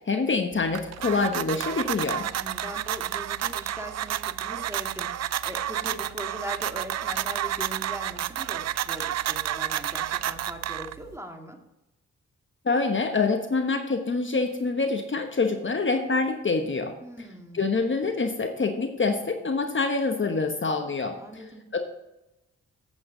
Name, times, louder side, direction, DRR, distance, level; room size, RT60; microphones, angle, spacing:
voice 1, 0.0-2.3 12.6-17.3 17.5-21.4 21.7-21.8, left 4 dB, 40° left, 5 dB, 1.1 m, -26 dB
sound 1, 0.5-11.2, right 11 dB, 55° right, 0.5 m, -30 dB
voice 2, 2.4-11.6 17.0-17.6 21.2-21.6, equal, 10° right, 3 dB, 2.0 m, -40 dB
8.4 x 8.3 x 3.9 m, 0.93 s
supercardioid pair, 50°, 31 cm